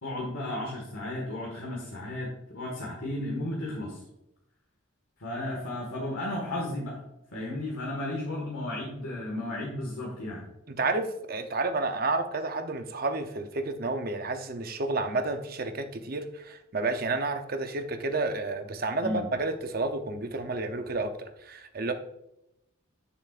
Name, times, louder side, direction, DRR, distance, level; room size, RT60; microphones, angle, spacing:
voice 1, 0.0-4.0 5.2-7.0 7.3-10.4 19.0-19.3, left 1 dB, 85° left, -3 dB, 1.7 m, -34 dB
voice 2, 10.7-21.9, right 3 dB, 45° right, 7 dB, 0.7 m, -30 dB
8.9 x 7.0 x 2.5 m, 0.83 s
head